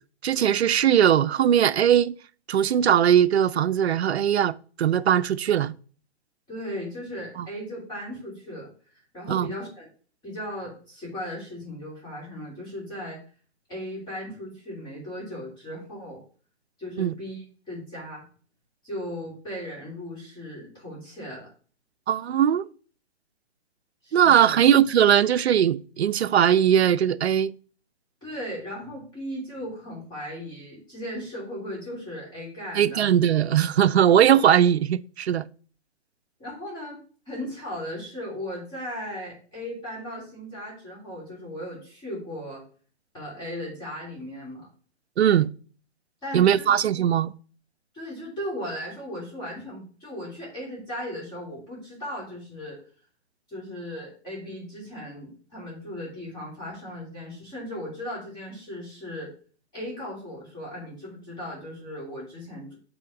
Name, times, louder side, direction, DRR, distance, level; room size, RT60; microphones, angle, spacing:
voice 1, 0.2-2.1 2.5-5.7 7.4-7.5 9.3-9.5 17.0-17.1 22.1-22.7 24.1-27.5 32.7-35.5 45.2-45.5 46.3-47.3, right 9 dB, 70° right, 0.5 m, -20 dB
voice 2, 6.5-8.7 9.1-9.9 10.2-13.2 13.7-16.2 16.8-18.3 18.8-21.5 24.0-24.7 28.2-33.1 36.4-42.6 43.1-44.6 46.2-47.0 47.9-52.8 53.5-59.3 59.7-62.7, equal, 15° left, 3.0 m, -37 dB
8.6 x 3.5 x 3.5 m
figure-of-eight pair, 135°, 34 cm